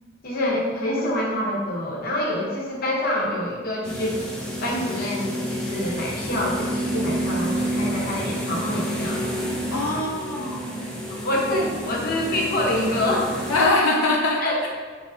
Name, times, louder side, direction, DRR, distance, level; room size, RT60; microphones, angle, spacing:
voice 1, 0.2-4.2 4.6-9.3 11.1-13.3 14.4-14.7, left 1 dB, 45° left, -3 dB, 0.8 m, -26 dB
sound 1, 3.8-13.7, equal, 5° left, 0.5 m, -29 dB
voice 2, 9.7-10.7 13.5-14.7, left 2 dB, 80° left, -2 dB, 0.5 m, -22 dB
5.3 x 3.0 x 2.7 m, 1.6 s
head